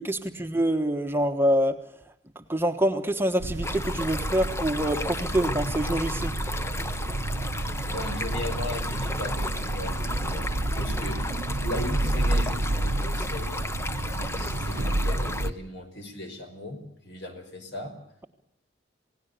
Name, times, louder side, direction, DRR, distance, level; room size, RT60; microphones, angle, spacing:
voice 1, 0.0-1.8 2.5-6.4, equal, 10° right, 1.2 m, -25 dB
sound 1, 3.4-15.5, right 2 dB, 70° right, 0.9 m, -30 dB
Stream, 3.6-15.5, left 2 dB, 15° left, 0.9 m, -34 dB
voice 2, 7.9-11.2 11.6-13.6 14.2-17.9, left 1 dB, 65° left, 5.2 m, -37 dB
28.0 x 18.0 x 6.7 m
head